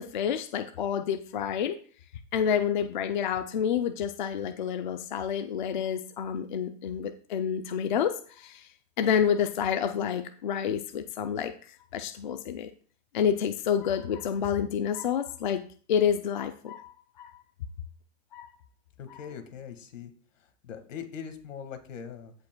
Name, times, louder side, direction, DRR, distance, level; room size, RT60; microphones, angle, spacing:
voice 1, 0.0-1.8 2.3-8.7 9.0-12.7 13.1-15.6 15.9-17.3 18.3-18.5, left 8 dB, 40° left, 8 dB, 0.4 m, -29 dB
voice 2, 19.0-22.3, left 7 dB, 75° left, 8 dB, 1.7 m, -42 dB
15.5 x 5.2 x 2.2 m, 0.43 s
supercardioid pair, 175°, 39 cm